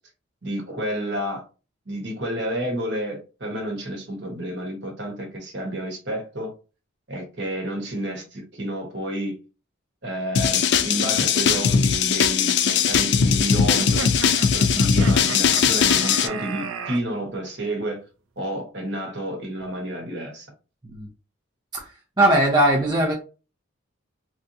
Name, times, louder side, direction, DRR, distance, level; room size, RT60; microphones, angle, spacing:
voice 1, 0.4-1.4 1.9-6.5 7.1-9.4 10.0-14.1 14.5-18.1 18.4-20.5, right 1 dB, 55° right, 1.2 m, -30 dB
sound 1, 10.4-16.3, left 6 dB, 55° left, 0.3 m, -20 dB
sound 2, 13.8-17.0, right 5 dB, 80° right, 0.5 m, -33 dB
voice 2, 22.2-23.1, right 1 dB, 20° right, 0.6 m, -19 dB
3.4 x 2.6 x 2.7 m
head